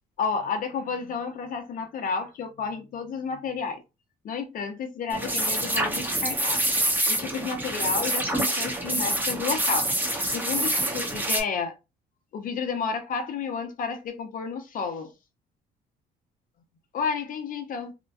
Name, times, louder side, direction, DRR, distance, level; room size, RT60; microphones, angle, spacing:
voice 1, 0.2-3.8 4.2-6.6 7.1-9.9 10.3-11.7 12.3-15.1 16.9-17.9, left 5 dB, 55° left, 0.8 m, -31 dB
sound 1, 5.1-11.4, right 1 dB, 10° right, 0.9 m, -26 dB
2.9 x 2.2 x 2.6 m
cardioid pair, 110°, 17 cm